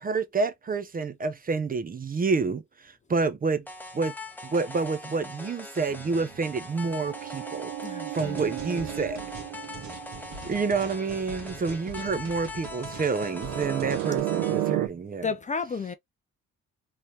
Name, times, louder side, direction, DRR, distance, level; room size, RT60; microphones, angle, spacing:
voice 1, 0.0-3.7 3.9-4.1 4.4-7.7 8.1-9.2 10.4-15.3, right 4 dB, 30° right, 0.6 m, -28 dB
sound 1, 3.7-14.7, left 2 dB, 5° left, 0.8 m, -42 dB
sound 2, 5.9-10.8 13.3-14.9, right 14 dB, 85° right, 0.5 m, -33 dB
voice 2, 7.8-8.8 14.7-14.8 15.2-15.9, left 5 dB, 25° left, 0.5 m, -33 dB
sound 3, 8.2-14.2, right 4 dB, 65° right, 1.4 m, -43 dB
3.2 x 2.8 x 3.0 m
cardioid pair, 90°, 30 cm